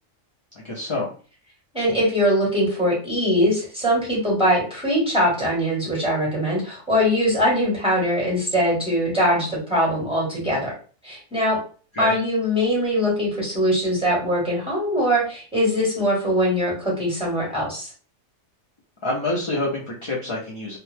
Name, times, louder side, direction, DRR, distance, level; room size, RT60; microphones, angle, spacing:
voice 1, 0.6-1.1 11.9-12.1 19.0-20.8, left 2 dB, 35° left, -5 dB, 0.5 m, -27 dB
voice 2, 1.7-10.7 11.0-11.6 12.0-17.9, equal, 5° right, -6 dB, 1.2 m, -22 dB
2.5 x 2.2 x 3.3 m, 0.38 s
omnidirectional pair, 1.4 m